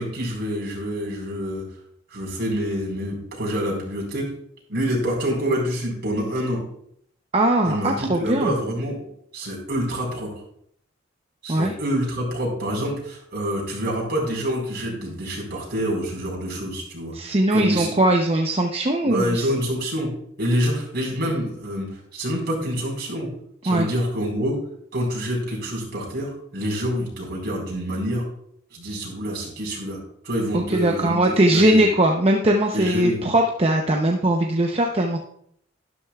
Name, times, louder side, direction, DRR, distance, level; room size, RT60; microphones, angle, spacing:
voice 1, 0.0-1.6 2.1-4.3 4.7-6.6 7.6-9.0 9.3-10.3 11.4-18.0 19.0-20.1 20.4-23.3 23.6-24.5 24.9-28.2 28.7-30.0 30.2-31.8 32.7-33.2, equal, 55° right, -2 dB, 4.7 m, -27 dB
voice 2, 7.3-8.6 11.5-11.7 17.1-19.5 23.7-23.9 30.5-35.2, right 1 dB, 30° right, 2 dB, 0.8 m, -20 dB
12.5 x 12.0 x 2.4 m, 0.68 s
head